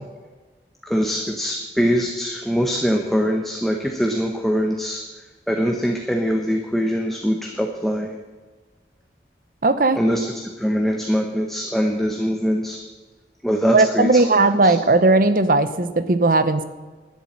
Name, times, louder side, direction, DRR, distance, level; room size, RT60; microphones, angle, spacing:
voice 1, 0.8-5.0 5.5-8.1 10.0-12.8 13.4-14.2 14.6-14.7, equal, ahead, 2 dB, 0.8 m, -22 dB
voice 2, 9.6-10.0 13.7-16.6, right 2 dB, 50° right, 12 dB, 0.7 m, -17 dB
12.0 x 7.3 x 8.8 m, 1.3 s
head